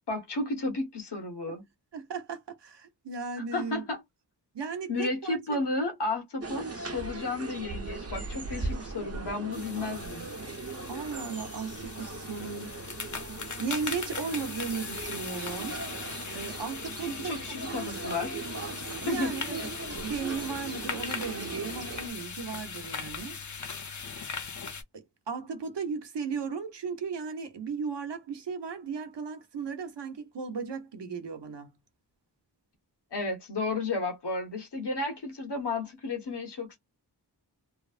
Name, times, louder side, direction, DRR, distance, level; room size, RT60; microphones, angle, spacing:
voice 1, 0.1-1.6 3.5-4.0 4.9-10.3 17.0-18.4 19.1-19.3 33.1-36.8, left 2 dB, 75° left, 1.3 m, -33 dB
voice 2, 1.9-3.9 4.5-5.6 10.9-12.7 13.6-15.8 16.3-17.6 19.0-23.3 24.9-31.7, right 5 dB, 80° right, 0.9 m, -36 dB
sound 1, 6.4-22.1, right 3 dB, 35° right, 0.9 m, -39 dB
sound 2, 9.5-24.8, left 5 dB, 45° left, 0.6 m, -39 dB
3.1 x 2.0 x 2.4 m
wide cardioid pair, 85°, 41 cm